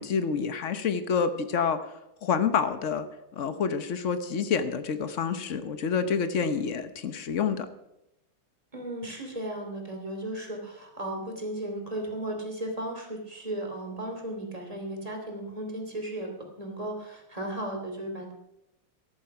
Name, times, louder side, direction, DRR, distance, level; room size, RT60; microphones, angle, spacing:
voice 1, 0.0-1.8 2.2-3.1 3.4-7.7, left 6 dB, 55° left, 11 dB, 0.8 m, -28 dB
voice 2, 8.7-16.3 16.6-18.3, right 1 dB, 15° right, 2 dB, 2.7 m, -35 dB
14.0 x 11.0 x 5.8 m, 0.87 s
omnidirectional pair, 2.4 m